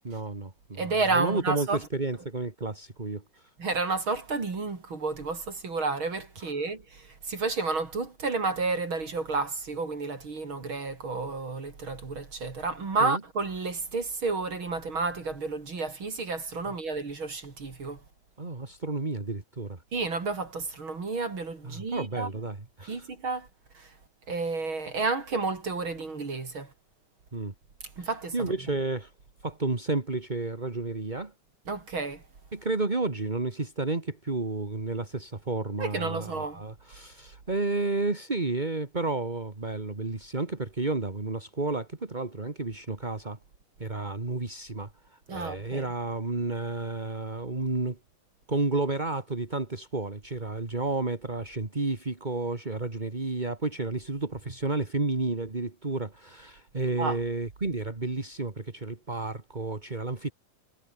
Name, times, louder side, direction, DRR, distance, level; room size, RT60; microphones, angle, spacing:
voice 1, 0.0-3.5 6.4-6.5 13.0-13.2 16.6-16.7 18.4-19.8 21.6-23.1 27.3-27.5 28.0-29.1 29.4-31.3 32.5-43.4 43.8-48.0 48.5-60.3, right 3 dB, 15° right, 1.6 m, -31 dB
voice 2, 0.8-1.8 3.6-18.0 19.9-22.3 22.9-23.5 23.7-23.9 24.3-26.7 28.0-28.5 31.7-32.2 35.8-36.6 45.3-45.9 57.0-57.2, right 3 dB, 35° right, 4.0 m, -31 dB
omnidirectional pair, 4.0 m